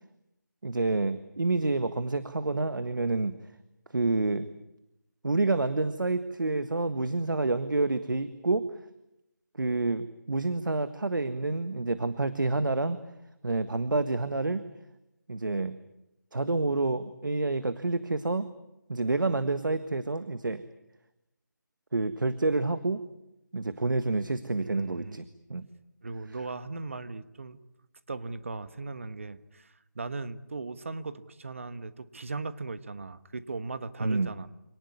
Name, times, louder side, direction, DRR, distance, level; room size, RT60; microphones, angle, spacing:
voice 1, 0.6-3.3 3.9-4.5 5.2-8.6 9.6-13.0 13.4-14.6 15.3-15.8 16.3-18.5 18.9-20.6 21.9-23.0 23.5-25.2 25.5-25.6 34.0-34.3, right 3 dB, 90° right, 12 dB, 1.6 m, -28 dB
voice 2, 24.6-25.2 26.0-27.6 28.1-34.5, right 3 dB, 40° right, 13 dB, 1.3 m, -38 dB
26.5 x 19.0 x 9.6 m, 0.90 s
figure-of-eight pair, 175°, 10 cm